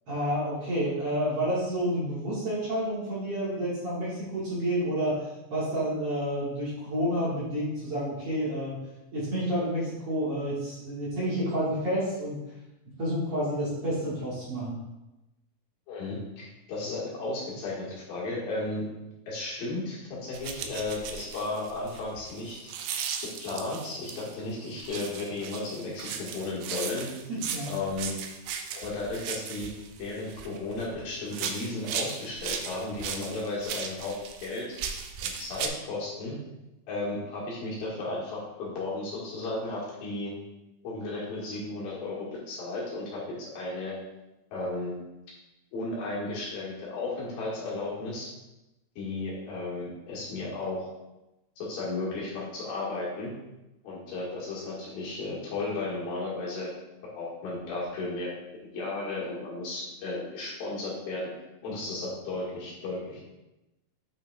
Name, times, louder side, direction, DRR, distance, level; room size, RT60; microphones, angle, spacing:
voice 1, 0.1-5.2 5.5-8.8 9.1-12.4 13.0-14.8 27.3-27.8, equal, 50° right, -9 dB, 2.2 m, -29 dB
voice 2, 15.9-18.9 19.3-22.6 23.4-27.1 27.7-28.1 28.7-29.7 30.0-34.7 35.2-36.4 36.9-40.3 40.8-44.0 44.5-44.9 45.7-48.3 49.0-50.9 51.6-53.3 53.8-56.7 57.1-61.3 61.6-63.2, left 2 dB, 70° left, -6 dB, 3.5 m, -34 dB
sound 1, 20.3-24.3 24.8-30.9 31.3-35.7, right 7 dB, 85° right, 1.8 m, -37 dB
8.4 x 5.8 x 2.4 m, 0.98 s
omnidirectional pair, 4.3 m